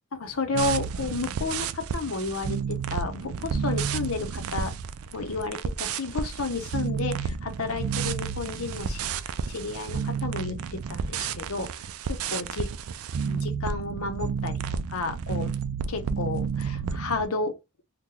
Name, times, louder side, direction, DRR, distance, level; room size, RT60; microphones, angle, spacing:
voice 1, 0.1-4.7 5.1-9.0 9.5-12.7 13.2-15.5 15.9-17.6, left 3 dB, 85° left, 0.8 m, -32 dB
sound 1, 0.5-17.3, right 6 dB, 90° right, 0.4 m, -31 dB
2.9 x 2.2 x 3.7 m
head